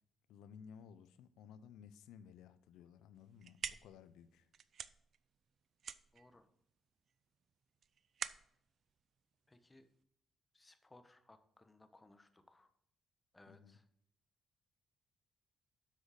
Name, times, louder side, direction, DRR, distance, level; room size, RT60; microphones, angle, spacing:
voice 1, 0.3-4.5 13.5-13.8, left 7 dB, 90° left, 0.6 m, -57 dB
sound 1, 3.2-10.0, right 7 dB, 55° right, 0.4 m, -49 dB
voice 2, 6.1-6.5 9.5-9.9 10.5-12.7 13.3-13.8, left 2 dB, 20° left, 1.1 m, -64 dB
7.6 x 6.3 x 4.9 m
cardioid pair, 90°, 0 cm